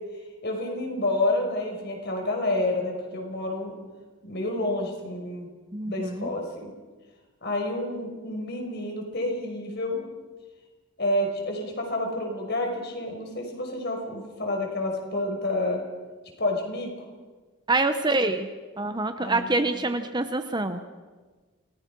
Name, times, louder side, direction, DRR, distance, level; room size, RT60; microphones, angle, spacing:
voice 1, 0.4-3.7 4.2-5.5 5.8-6.7 7.4-10.0 11.0-15.8 16.4-16.9 19.2-19.5 19.9-20.0, left 1 dB, 50° left, 2 dB, 5.9 m, -29 dB
voice 2, 5.7-6.3 17.7-18.5 18.8-20.8, right 2 dB, 20° right, 8 dB, 1.0 m, -26 dB
29.0 x 20.0 x 6.2 m, 1.3 s
head